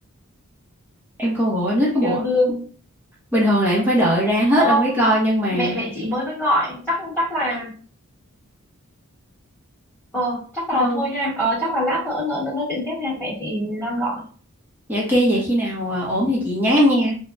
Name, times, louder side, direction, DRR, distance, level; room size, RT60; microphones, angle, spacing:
voice 1, 1.2-2.2 3.3-5.8 10.7-11.1 14.9-17.1, equal, 10° right, -5 dB, 0.9 m, -19 dB
voice 2, 2.0-2.7 4.6-4.9 5.5-7.7 10.1-14.2, equal, 5° left, -9 dB, 1.3 m, -24 dB
3.3 x 2.2 x 2.6 m, 0.41 s
head